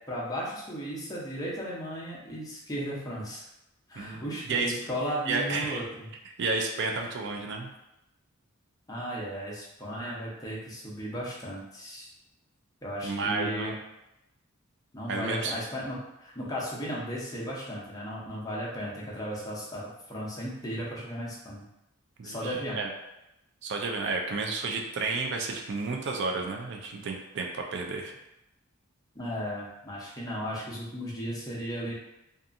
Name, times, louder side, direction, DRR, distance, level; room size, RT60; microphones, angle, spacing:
voice 1, 0.1-3.4 3.9-6.1 8.9-12.1 12.8-13.8 14.9-21.6 22.2-22.8 29.1-31.9, equal, 15° left, -5 dB, 0.6 m, -35 dB
voice 2, 4.0-4.7 5.3-5.8 6.4-7.7 13.0-13.8 15.1-15.5 22.2-22.9 23.6-28.1, right 3 dB, 55° right, 2 dB, 0.4 m, -31 dB
2.7 x 2.4 x 2.5 m, 0.90 s
head